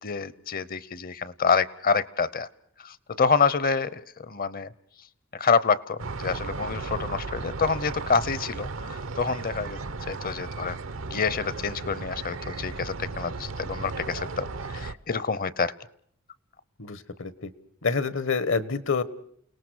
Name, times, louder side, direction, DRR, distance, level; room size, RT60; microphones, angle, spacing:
voice 1, 0.0-2.5 2.8-4.7 5.3-9.8 10.1-10.8 11.1-15.7, left 5 dB, 45° left, 19 dB, 0.9 m, -27 dB
sound 1, 6.0-14.9, right 3 dB, 75° right, 0.9 m, -35 dB
voice 2, 16.8-17.5 17.8-19.0, left 4 dB, 65° left, 17 dB, 1.3 m, -27 dB
29.5 x 18.5 x 6.4 m, 0.65 s
head